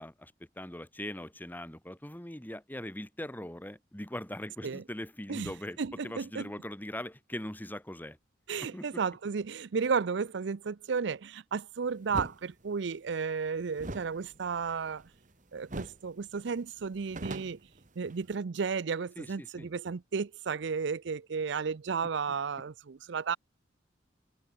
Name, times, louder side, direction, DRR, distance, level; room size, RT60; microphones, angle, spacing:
voice 1, 0.0-8.2 8.6-8.9 19.2-19.7, left 1 dB, 10° left, 1.9 m, -41 dB
voice 2, 5.8-6.5 8.5-15.0 15.5-17.6 18.0-23.4, right 5 dB, 65° right, 0.5 m, -33 dB
sound 1, 12.1-12.4 13.8-15.3 15.7-16.1 16.4-16.5 16.8-18.3, right 2 dB, 45° right, 1.6 m, -41 dB
head